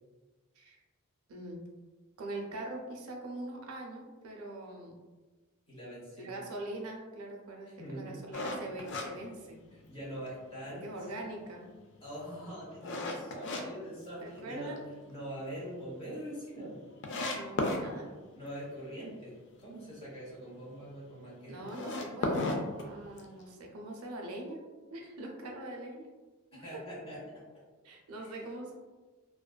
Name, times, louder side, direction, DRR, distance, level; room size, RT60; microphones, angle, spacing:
voice 1, 1.3-1.6 2.2-5.0 6.2-9.6 10.7-11.7 14.2-14.8 17.3-18.1 21.5-24.6 24.9-26.1 26.5-26.8 27.8-28.8, right 1 dB, 85° right, 1 dB, 0.5 m, -43 dB
voice 2, 5.7-6.4 7.7-8.2 9.7-10.9 12.0-14.7 15.1-16.8 18.0-21.6 26.5-27.4 28.2-28.3, equal, 25° left, -7 dB, 1.0 m, -43 dB
sound 1, 8.3-10.0 10.5-10.6 11.1-13.6 14.0-14.8 15.1-15.2 15.6-15.7 15.9-16.0 16.6-16.7 17.0-17.8 21.6-23.4, left 2 dB, 55° left, 0.3 m, -34 dB
2.5 x 2.2 x 2.2 m, 1.3 s
head